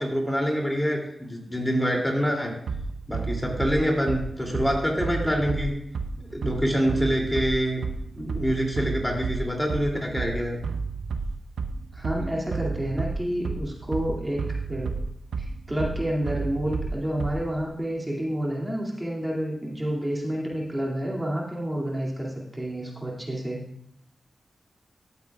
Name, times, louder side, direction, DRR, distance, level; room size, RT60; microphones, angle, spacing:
voice 1, 0.0-2.5 3.1-5.7 6.3-7.8 8.2-10.6, equal, 15° left, 0 dB, 2.7 m, -26 dB
Bass drum, 2.7-17.7, right 4 dB, 80° right, 0.6 m, -31 dB
voice 2, 11.9-14.4 14.7-14.9 15.4-23.6, equal, 15° right, -3 dB, 2.3 m, -29 dB
14.5 x 8.1 x 2.4 m, 0.74 s
cardioid pair, 45°, 0 cm